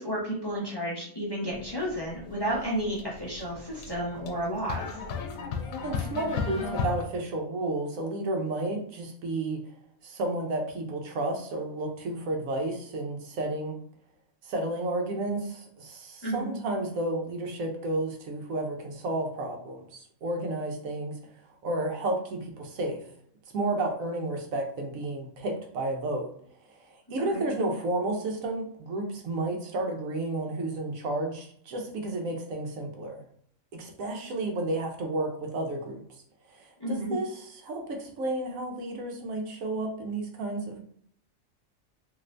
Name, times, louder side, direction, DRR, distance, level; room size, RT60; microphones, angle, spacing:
voice 1, 0.0-5.0 16.2-16.5 27.3-27.4 36.8-37.2, right 1 dB, 25° left, -6 dB, 0.6 m, -32 dB
sound 1, 1.5-7.0, left 5 dB, 90° left, 1.0 m, -35 dB
voice 2, 5.8-9.6 10.0-13.8 14.4-21.2 21.6-23.0 23.5-26.3 26.8-33.2 33.7-36.0 36.5-40.8, right 2 dB, 85° right, 2 dB, 1.2 m, -32 dB
2.9 x 2.6 x 3.2 m, 0.62 s
omnidirectional pair, 1.4 m